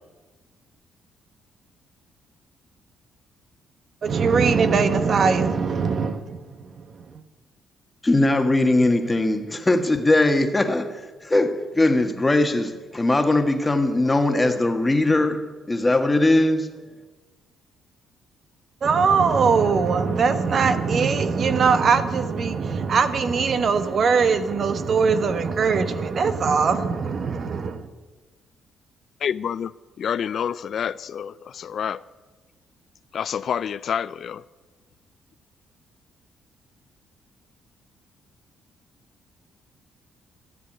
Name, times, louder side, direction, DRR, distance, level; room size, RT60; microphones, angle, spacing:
voice 1, 4.0-6.9 18.8-27.9, right 5 dB, 50° right, 1.1 m, -21 dB
voice 2, 8.0-16.7, left 2 dB, 15° left, 1.5 m, -20 dB
voice 3, 29.2-29.7 30.0-32.0 33.1-34.4, left 8 dB, 60° left, 0.3 m, -28 dB
13.5 x 6.9 x 10.0 m
cardioid pair, 90°, 0 cm